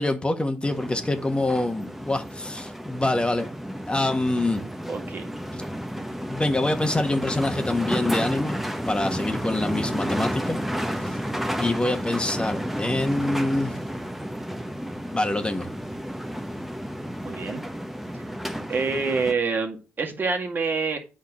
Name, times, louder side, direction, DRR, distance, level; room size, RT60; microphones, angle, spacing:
voice 1, 0.0-3.5 3.9-4.6 6.2-8.6 8.9-10.6 11.0-11.2 11.6-13.8 15.1-15.7, left 2 dB, 20° left, 1.5 m, -25 dB
sound 1, 0.6-19.3, equal, 5° right, 1.3 m, -31 dB
voice 2, 4.9-5.3 17.2-17.6 18.7-21.0, right 4 dB, 45° right, 2.0 m, -26 dB
8.3 x 3.8 x 6.2 m
supercardioid pair, 45°, 5 cm